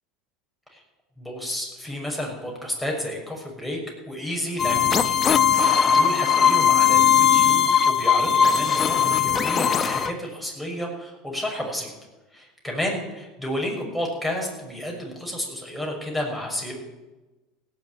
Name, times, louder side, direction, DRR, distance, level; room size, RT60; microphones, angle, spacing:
voice 1, 1.2-5.2 5.5-11.9 12.3-16.7, left 1 dB, ahead, -1 dB, 6.4 m, -31 dB
sound 1, 4.6-10.1, left 8 dB, 35° left, 0.9 m, -19 dB
17.0 x 7.4 x 9.4 m, 1.1 s
hypercardioid pair, 80°, 0 cm